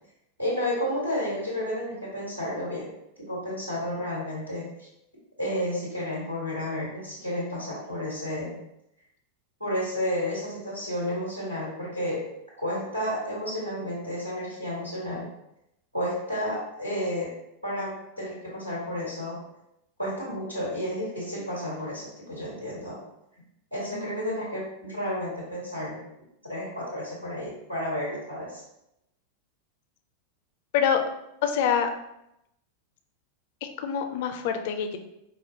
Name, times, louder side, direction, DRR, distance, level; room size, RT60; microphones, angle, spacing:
voice 1, 0.4-2.9 3.2-4.9 5.4-8.5 9.6-12.2 12.6-15.3 15.9-17.3 17.6-19.4 20.0-23.0 23.7-26.0 26.5-28.6, equal, 85° right, -6 dB, 1.4 m, -31 dB
voice 2, 23.9-24.4 30.7-31.0 31.4-31.9 33.6-35.0, left 7 dB, 50° left, 6 dB, 0.4 m, -26 dB
5.0 x 2.0 x 2.7 m, 0.84 s
figure-of-eight pair, 90°, 0 cm